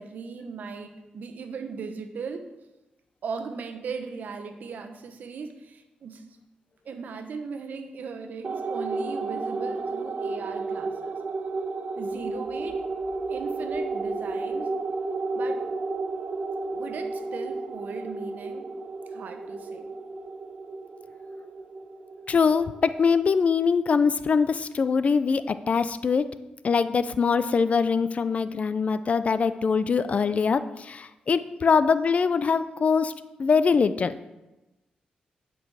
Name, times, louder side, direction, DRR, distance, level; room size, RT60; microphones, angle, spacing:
voice 1, 0.0-2.5 3.2-6.2 6.8-11.2 12.0-12.8 13.3-14.7 15.3-15.6 16.7-18.7 19.1-19.9, right 5 dB, 75° right, 6 dB, 1.0 m, -38 dB
sound 1, 8.4-23.2, right 3 dB, 45° right, 0.5 m, -32 dB
voice 2, 22.3-26.3 26.6-33.1 33.4-34.2, left 5 dB, 50° left, 14 dB, 0.5 m, -23 dB
10.5 x 6.2 x 4.8 m, 1.0 s
cardioid pair, 80°, 3 cm